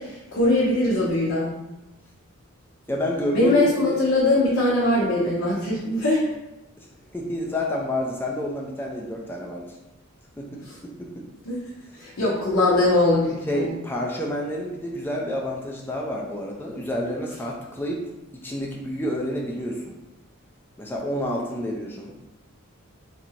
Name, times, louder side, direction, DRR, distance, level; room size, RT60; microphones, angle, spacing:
voice 1, 0.0-1.6 3.3-6.2 11.4-11.6 12.0-13.7, left 2 dB, 65° left, -8 dB, 0.9 m, -21 dB
voice 2, 2.9-4.0 6.8-6.9 7.1-9.8 10.4-11.3 13.5-18.0 18.3-19.9 20.8-22.2, left 1 dB, 10° left, -2 dB, 0.3 m, -29 dB
2.8 x 2.6 x 4.3 m, 0.97 s
head